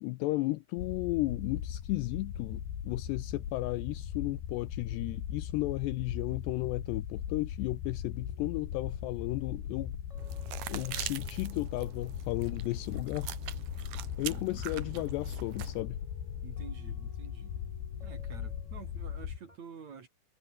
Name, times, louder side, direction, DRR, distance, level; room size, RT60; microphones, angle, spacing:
voice 1, 0.0-9.9 10.7-13.3 14.2-16.0, left 20 dB, 85° left, 2.5 m, -34 dB
sound 1, 0.8-19.4, left 9 dB, 60° left, 4.5 m, -39 dB
sound 2, 8.1-19.6, left 1 dB, 5° left, 5.7 m, -58 dB
sound 3, 10.2-15.8, right 13 dB, 85° right, 1.8 m, -43 dB
voice 2, 14.3-15.1 16.4-17.6 18.0-20.1, right 6 dB, 45° right, 3.3 m, -49 dB
omnidirectional pair, 5.3 m